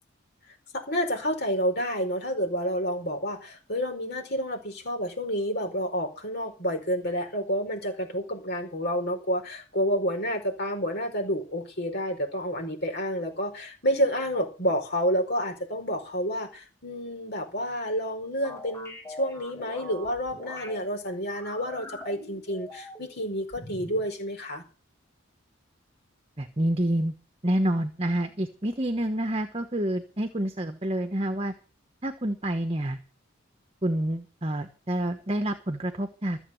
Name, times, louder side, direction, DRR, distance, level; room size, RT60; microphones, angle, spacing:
voice 1, 0.7-24.6, equal, 55° left, 3 dB, 4.8 m, -29 dB
sound 1, 18.4-20.8 21.3-23.2 23.5-24.1, left 1 dB, 15° left, 6.6 m, -43 dB
voice 2, 26.4-27.1 27.4-31.5 32.0-33.0 33.8-36.4, right 1 dB, 30° right, 8 dB, 1.2 m, -28 dB
14.0 x 8.0 x 7.8 m, 0.34 s
head